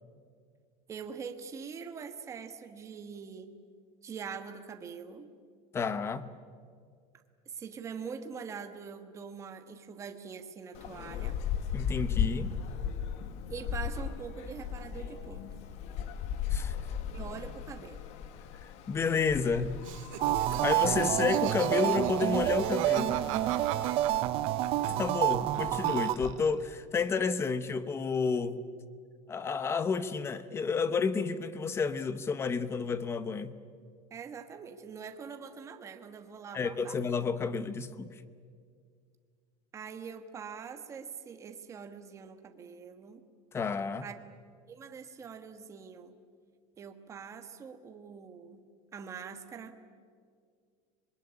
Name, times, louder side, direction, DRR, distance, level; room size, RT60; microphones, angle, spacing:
voice 1, 0.9-3.5 4.0-5.3 7.4-11.4 13.5-15.6 17.1-18.0 20.5-20.9 23.9-24.1 34.1-37.0 39.7-43.2 44.0-44.2 44.7-46.2 46.8-48.6 48.9-49.9, right 6 dB, 20° right, 7 dB, 1.3 m, -43 dB
voice 2, 5.7-6.3 11.7-12.5 16.5-16.8 18.9-19.8 20.6-23.2 25.0-28.6 29.3-33.5 36.5-38.1 43.5-44.1, left 5 dB, 15° left, 14 dB, 0.8 m, -30 dB
sound 1, 10.7-26.3, left 8 dB, 40° left, 1.3 m, -38 dB
Laughter, 19.8-25.6 25.8-26.6, right 13 dB, 90° right, 2.3 m, -39 dB
sound 2, 20.2-26.1, right 14 dB, 35° right, 0.7 m, -28 dB
26.0 x 21.5 x 9.9 m, 2.1 s
cardioid pair, 175°, 16 cm